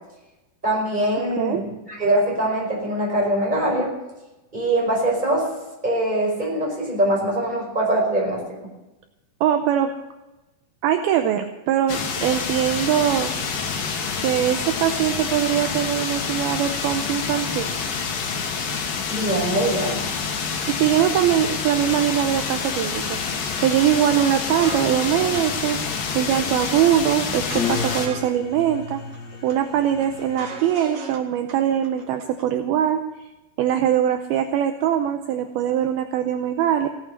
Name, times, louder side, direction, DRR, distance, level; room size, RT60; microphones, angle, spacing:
voice 1, 0.6-3.9 4.5-5.5 5.8-8.7 19.1-20.0, right 1 dB, 10° right, -2 dB, 5.0 m, -23 dB
voice 2, 9.4-9.9 10.8-13.3 14.2-17.7 20.7-23.2 23.6-29.0 29.4-33.0 33.6-36.9, right 10 dB, 75° right, 6 dB, 2.5 m, -22 dB
sound 1, 11.9-28.1, left 5 dB, 65° left, 3.3 m, -27 dB
sound 2, 24.2-24.3 24.6-25.4 25.7-25.8 26.1-26.7 27.0-28.3 28.6-28.7 29.0-29.5 29.8-31.2 31.5-31.6 31.8-32.4, right 4 dB, 45° right, 2.3 m, -37 dB
sound 3, 25.3-30.6, left 6 dB, 85° left, 0.9 m, -34 dB
17.0 x 8.8 x 8.0 m, 1.0 s
omnidirectional pair, 4.8 m